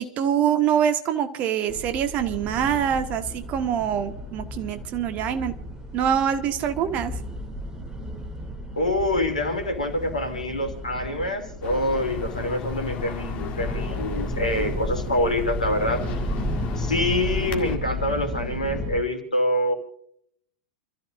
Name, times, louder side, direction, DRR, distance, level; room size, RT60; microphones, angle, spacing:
voice 1, 0.0-5.5 5.9-7.1, right 9 dB, 35° right, 9 dB, 1.4 m, -24 dB
sound 1, 1.7-19.0, equal, 15° right, 2.6 m, -34 dB
voice 2, 8.7-16.0 16.8-19.7, left 1 dB, 80° left, 4 dB, 2.9 m, -26 dB
sound 2, 11.6-17.8, left 5 dB, 35° left, 1.9 m, -34 dB
29.5 x 14.0 x 2.5 m, 0.67 s
figure-of-eight pair, 90°, 4 cm